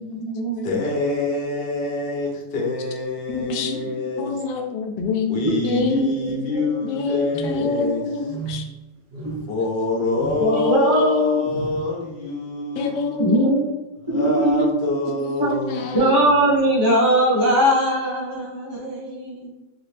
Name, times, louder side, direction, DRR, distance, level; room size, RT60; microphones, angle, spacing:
voice 1, 0.0-0.7 3.4-3.9 5.4-6.7 7.7-7.9 9.2-9.3 10.4-11.0 13.2-13.6 14.1-14.7 15.4-15.5 15.9-19.5, right 1 dB, 20° right, -6 dB, 0.7 m, -21 dB
voice 2, 0.6-4.4 5.3-8.3 9.5-13.2 14.1-16.5, left 2 dB, 55° left, -1 dB, 0.6 m, -26 dB
voice 3, 3.3-3.7 4.2-6.1 6.9-8.6 10.5-11.4 12.8-13.6 15.5-16.1, left 4 dB, 85° left, 4 dB, 1.2 m, -26 dB
sound 1, 7.3-7.8 8.2-8.7 9.1-9.6 10.1-10.5 11.4-11.9, right 3 dB, 55° right, 0.7 m, -34 dB
3.0 x 2.9 x 3.2 m, 1.1 s
omnidirectional pair, 1.8 m